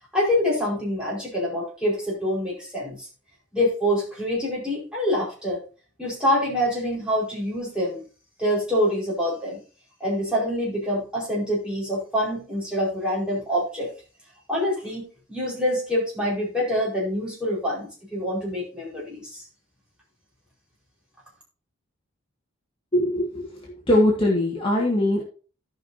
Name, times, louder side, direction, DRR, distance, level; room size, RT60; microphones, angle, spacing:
voice 1, 0.1-3.1 3.5-5.6 6.0-8.0 8.4-9.6 10.0-13.9 14.5-19.4, equal, 5° right, -6 dB, 4.8 m, -26 dB
voice 2, 22.9-25.2, left 1 dB, 25° left, -3 dB, 1.9 m, -22 dB
17.0 x 5.7 x 2.7 m, 0.36 s
head